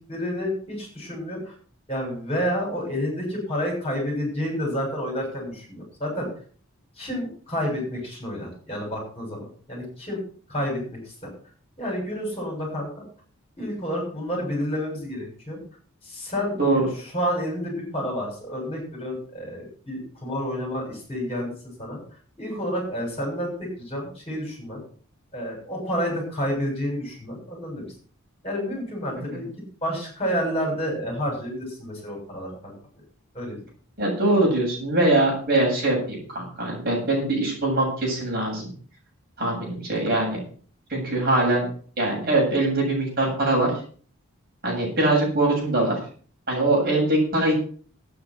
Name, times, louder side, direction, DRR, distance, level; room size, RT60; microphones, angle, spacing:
voice 1, 0.1-1.5 1.9-6.3 7.0-10.2 10.5-11.1 11.8-13.0 13.6-15.6 16.0-21.5 21.8-22.0 22.4-24.8 25.3-27.9 28.4-29.5 29.8-32.7 33.3-33.6, equal, 25° left, 0 dB, 7.0 m, -29 dB
voice 2, 34.0-38.7 39.4-40.4 40.9-41.7 42.0-43.7 44.6-46.0 46.5-47.5, right 2 dB, 45° right, -2 dB, 7.7 m, -22 dB
11.5 x 9.6 x 6.3 m, 0.44 s
head